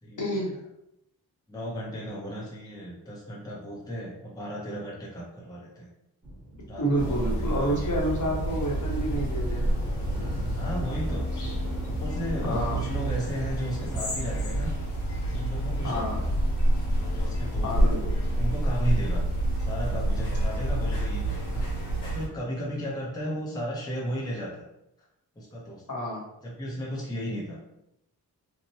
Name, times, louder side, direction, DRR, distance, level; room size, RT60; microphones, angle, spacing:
voice 1, 0.2-0.5 6.8-9.7 12.4-12.8 15.8-16.2 17.6-18.2 25.9-26.2, right 1 dB, 50° left, -3 dB, 1.0 m, -29 dB
voice 2, 1.5-5.9 6.7-7.9 8.2-8.6 10.5-11.3 11.9-14.7 15.3-16.3 16.9-19.2 19.6-21.7 22.0-24.6 25.4-25.8 26.4-27.6, equal, 10° left, -4 dB, 0.7 m, -35 dB
sound 1, 6.2-14.6, right 1 dB, 10° right, 1.1 m, -39 dB
sound 2, 7.0-22.3, right 1 dB, 80° left, 1.0 m, -28 dB
3.0 x 2.1 x 2.8 m, 0.84 s
cardioid pair, 85°, 40 cm